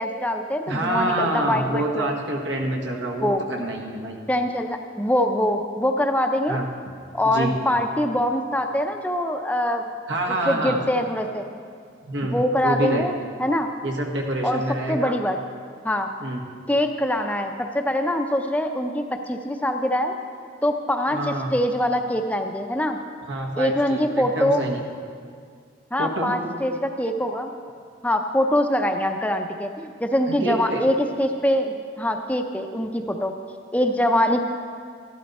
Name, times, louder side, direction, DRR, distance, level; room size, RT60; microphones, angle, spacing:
voice 1, 0.0-2.1 3.2-3.4 4.3-6.6 7.1-9.9 10.5-11.4 12.2-13.1 13.4-13.7 14.4-14.6 14.9-15.4 15.8-16.1 16.7-20.1 20.6-23.0 23.6-24.7 25.9-27.5 28.0-33.3 33.7-34.4, left 1 dB, 10° left, 5 dB, 0.5 m, -23 dB
voice 2, 0.7-4.2 6.5-6.7 7.2-7.6 10.1-10.8 12.0-13.1 13.8-15.1 16.2-16.5 21.1-21.6 23.3-24.8 26.0-26.3 30.3-30.8, right 1 dB, 85° right, 0 dB, 1.6 m, -27 dB
13.0 x 12.0 x 4.2 m, 2.2 s
head